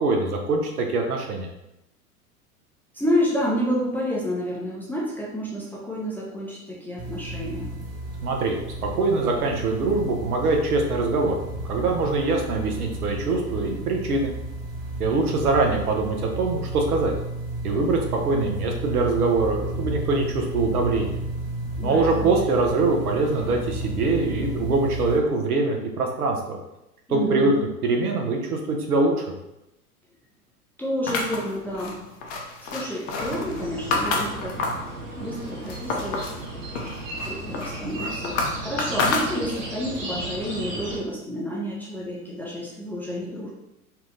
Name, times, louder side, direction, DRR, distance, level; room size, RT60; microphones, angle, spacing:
voice 1, 0.0-1.5 8.2-8.6 8.8-14.3 15.0-17.1 17.6-21.2 21.8-26.6 27.1-27.5 27.8-29.2, right 3 dB, 75° right, 2 dB, 1.0 m, -23 dB
voice 2, 2.9-7.7 21.8-22.3 27.1-27.7 30.8-32.0 32.6-34.7 35.2-36.3 37.3-43.5, equal, 5° left, -6 dB, 0.4 m, -29 dB
sound 1, 7.0-25.2, right 1 dB, 40° right, 1.4 m, -32 dB
sound 2, 31.1-34.9 35.3-36.4 36.8-39.8, left 3 dB, 40° left, 0.8 m, -29 dB
sound 3, 33.2-41.0, right 1 dB, 60° right, 1.5 m, -35 dB
4.3 x 2.6 x 3.7 m, 0.89 s
figure-of-eight pair, 95°, 45 cm